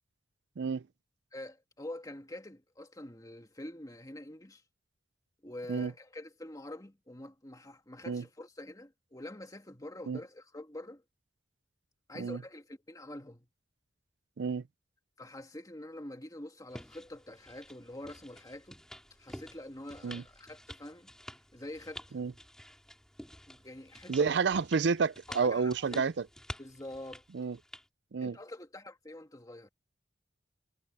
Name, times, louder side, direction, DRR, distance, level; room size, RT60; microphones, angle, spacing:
voice 1, 1.3-4.6 5.4-11.0 12.1-13.5 15.2-18.8 19.2-21.1 21.5-22.2 23.5-24.3 25.3-26.0 26.6-27.2 28.2-29.7, left 1 dB, 20° left, 1.9 m, -46 dB
sound 1, 16.7-27.9, equal, 5° left, 5.7 m, -50 dB
voice 2, 24.1-26.1 27.3-27.6 28.1-28.4, right 5 dB, 65° right, 0.5 m, -30 dB
head